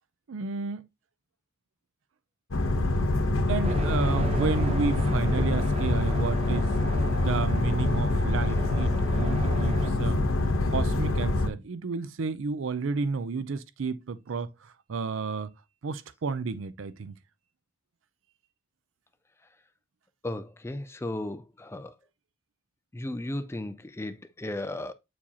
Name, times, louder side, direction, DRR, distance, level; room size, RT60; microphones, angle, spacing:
voice 1, 0.3-0.9 3.5-6.7 7.2-15.5 15.8-17.1, right 4 dB, 70° right, 0.5 m, -31 dB
sound 1, 2.5-11.5, left 2 dB, 85° left, 0.9 m, -25 dB
sound 2, 3.6-9.9, right 2 dB, 30° right, 0.8 m, -39 dB
voice 2, 20.2-21.9 22.9-24.9, left 1 dB, 10° left, 0.4 m, -35 dB
8.5 x 4.7 x 2.8 m
head